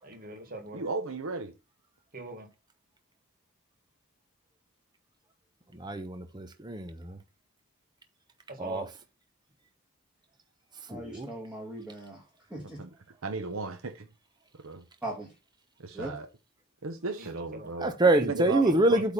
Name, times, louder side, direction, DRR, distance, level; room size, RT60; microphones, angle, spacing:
voice 1, 0.0-0.8 2.1-2.5 8.5-8.9 17.2-17.7 18.1-18.3 18.6-19.1, right 2 dB, 45° right, 1.9 m, -43 dB
voice 2, 0.7-1.5 12.5-12.9 13.2-14.1 14.5-14.9 15.8-16.3 16.8-18.0 18.2-19.0, right 3 dB, 75° right, 0.8 m, -35 dB
voice 3, 5.8-7.2 8.6-8.9 10.9-11.3 17.8-19.1, right 2 dB, 20° right, 0.8 m, -26 dB
voice 4, 10.9-12.2 12.5-12.8 15.0-15.3 15.9-16.2, right 1 dB, 5° right, 1.8 m, -39 dB
8.2 x 3.5 x 5.8 m
head